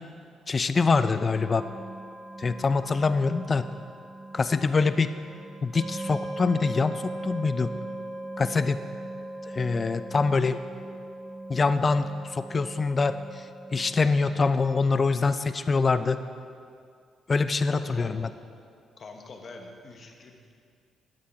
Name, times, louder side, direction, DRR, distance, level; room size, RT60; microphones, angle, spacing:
voice 1, 0.5-1.7 2.4-3.7 4.3-5.1 5.6-7.7 8.4-8.8 9.4-10.6 11.5-13.5 13.7-16.2 17.3-18.3, left 4 dB, 35° left, 12 dB, 0.4 m, -24 dB
sound 1, 1.3-14.4, right 1 dB, 50° right, 0.9 m, -39 dB
voice 2, 17.7-18.1 19.0-20.5, left 3 dB, 50° left, 3 dB, 1.2 m, -45 dB
10.5 x 7.6 x 4.7 m, 2.3 s
cardioid pair, 90°, 0 cm